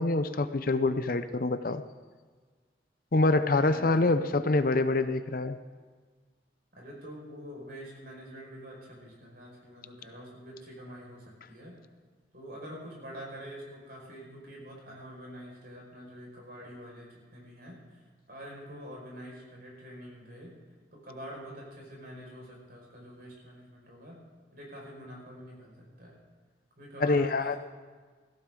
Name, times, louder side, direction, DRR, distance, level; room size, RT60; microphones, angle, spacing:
voice 1, 0.0-1.8 3.1-5.6 27.0-27.6, left 2 dB, 50° left, 11 dB, 0.6 m, -26 dB
voice 2, 3.5-4.3 6.7-11.7 12.3-18.0 18.3-20.5 20.9-24.2 24.5-26.2 26.8-27.6, equal, 55° right, -2 dB, 5.4 m, -46 dB
17.5 x 15.0 x 3.8 m, 1.5 s
head